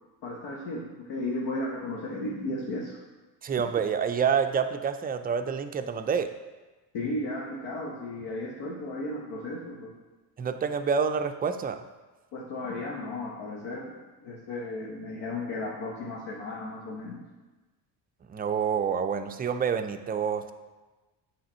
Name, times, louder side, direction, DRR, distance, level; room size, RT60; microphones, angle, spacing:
voice 1, 0.2-3.0 3.6-3.7 6.9-10.0 12.3-13.9 14.2-17.2, left 2 dB, 75° left, -4 dB, 1.1 m, -34 dB
voice 2, 3.4-6.3 10.4-11.8 18.3-20.5, right 6 dB, 20° right, 8 dB, 0.4 m, -27 dB
8.5 x 3.4 x 4.3 m, 1.2 s
cardioid pair, 90°, 43 cm